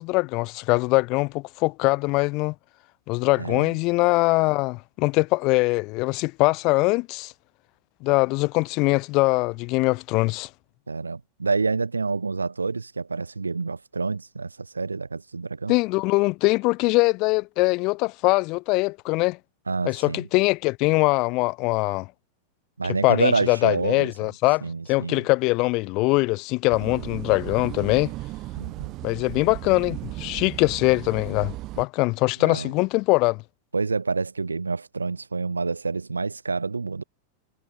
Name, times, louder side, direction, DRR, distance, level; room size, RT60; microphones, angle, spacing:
voice 1, 0.0-2.5 3.1-7.3 8.0-10.5 15.7-19.4 19.8-22.1 23.0-28.1 29.0-33.4, left 25 dB, 40° left, 3.0 m, -22 dB
voice 2, 3.4-3.7 10.9-15.7 19.7-20.3 22.8-24.1 24.6-25.2 28.5-28.9 32.4-32.7 33.7-37.0, right 4 dB, 80° right, 4.6 m, -28 dB
sound 1, 26.7-31.9, right 18 dB, 40° right, 5.0 m, -36 dB
figure-of-eight pair, 90°, 0 cm